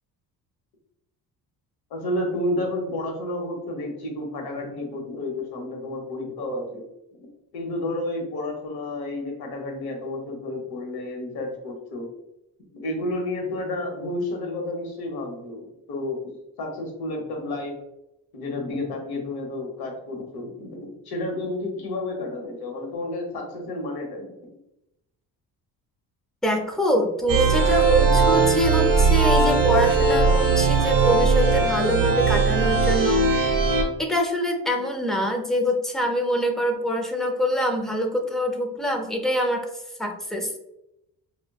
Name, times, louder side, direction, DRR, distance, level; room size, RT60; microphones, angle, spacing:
voice 1, 1.9-6.8 7.2-12.1 12.7-17.8 18.3-24.5, left 1 dB, 90° left, 1 dB, 1.1 m, -31 dB
voice 2, 26.4-33.2 34.0-39.7 40.0-40.6, equal, ahead, 2 dB, 0.4 m, -25 dB
sound 1, 27.3-33.8, right 4 dB, 60° right, 1.1 m, -19 dB
5.0 x 2.2 x 2.2 m, 0.86 s
cardioid pair, 145°, 35 cm